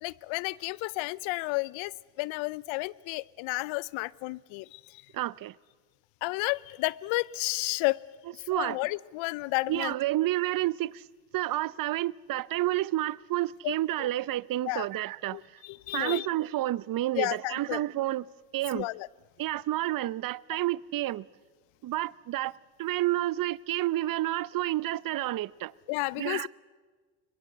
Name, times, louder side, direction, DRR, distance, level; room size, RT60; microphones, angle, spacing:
voice 1, 0.0-5.0 6.2-8.0 8.4-9.9 13.6-14.1 14.7-14.9 15.3-16.3 17.2-17.8 18.7-19.1 20.5-20.6 25.9-26.5, left 23 dB, 70° left, 0.7 m, -32 dB
voice 2, 5.1-5.5 8.5-8.8 9.7-11.0 11.3-15.4 15.9-18.2 18.5-18.9 19.4-21.3 21.8-22.5 22.8-25.7 26.2-26.5, right 15 dB, 45° right, 0.6 m, -30 dB
22.5 x 21.5 x 8.1 m
supercardioid pair, 75°, 48 cm